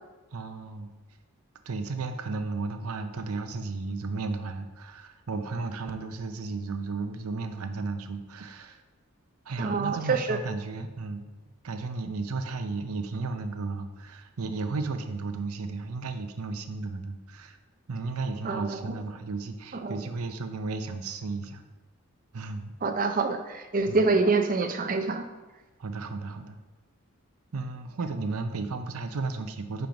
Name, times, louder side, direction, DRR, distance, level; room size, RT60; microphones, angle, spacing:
voice 1, 0.3-0.9 1.7-8.8 9.5-11.3 11.6-17.6 17.9-21.6 22.3-22.7 23.9-24.0 25.8-26.6 27.5-29.9, right 3 dB, 85° right, 8 dB, 0.6 m, -34 dB
voice 2, 9.6-10.4 18.4-18.9 19.7-20.0 22.8-25.2, right 3 dB, 40° right, 6 dB, 0.6 m, -26 dB
5.4 x 4.5 x 5.1 m, 1.2 s
head